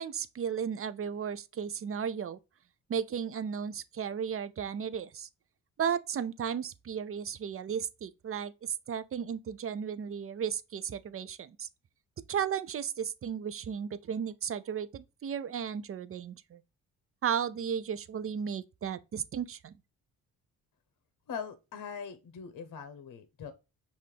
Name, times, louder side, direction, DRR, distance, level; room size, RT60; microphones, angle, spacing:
voice 1, 0.0-2.4 2.9-5.3 5.8-11.7 12.3-16.6 17.2-19.7, right 7 dB, 35° right, 0.5 m, -34 dB
voice 2, 21.3-23.5, left 6 dB, 55° left, 0.9 m, -41 dB
5.6 x 2.6 x 3.4 m
supercardioid pair, 55°, 38 cm